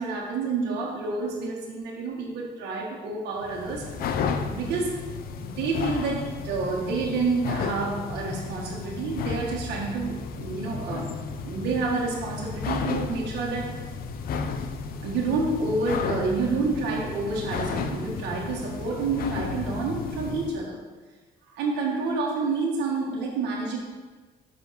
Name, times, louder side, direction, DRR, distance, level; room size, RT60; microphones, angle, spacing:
voice 1, 0.0-3.9 4.5-5.0 5.4-11.2 11.4-13.8 15.0-20.8 21.5-23.8, right 3 dB, 80° right, -2 dB, 1.6 m, -29 dB
sound 1, 3.4-20.6, left 5 dB, 60° left, 0.6 m, -33 dB
5.6 x 5.3 x 5.9 m, 1.3 s
cardioid pair, 110°, 17 cm